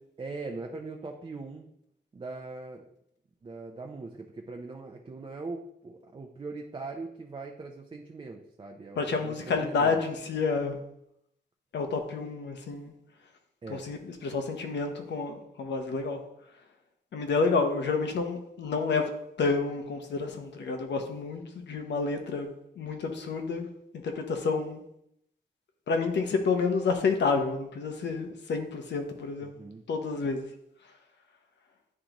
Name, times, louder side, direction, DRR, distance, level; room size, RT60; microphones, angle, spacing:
voice 1, 0.2-1.7 2.1-2.8 3.4-10.0 13.6-13.8 29.4-29.8, right 3 dB, 30° right, 2 dB, 0.5 m, -41 dB
voice 2, 9.0-10.8 11.7-12.9 13.7-16.2 17.1-19.1 19.4-22.5 22.8-23.7 24.0-24.8 25.9-29.5 29.9-30.4, left 4 dB, 90° left, 5 dB, 0.9 m, -29 dB
9.8 x 3.8 x 3.0 m, 0.76 s
wide cardioid pair, 145°, 18 cm